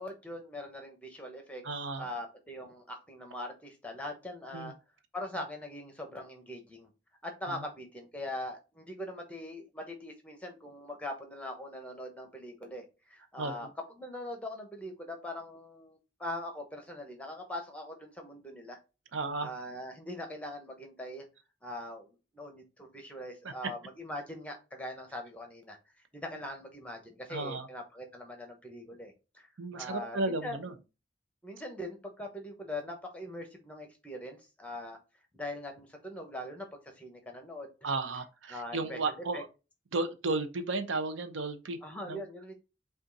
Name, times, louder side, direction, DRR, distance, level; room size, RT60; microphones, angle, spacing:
voice 1, 0.0-1.6 2.0-4.7 5.1-6.9 7.2-13.7 14.0-18.8 19.4-21.2 21.6-25.8 26.1-29.5 29.8-30.7 31.4-35.0 35.3-36.7 37.0-37.7 38.5-39.4 41.8-42.5, left 1 dB, 5° left, 0.9 m, -42 dB
voice 2, 1.6-2.1 4.5-4.7 7.5-7.6 13.4-13.5 19.1-19.5 23.4-23.5 27.3-27.7 29.6-30.7 37.8-39.5 39.9-41.8 42.1-42.2, right 3 dB, 85° right, 0.7 m, -34 dB
5.3 x 2.5 x 3.9 m
head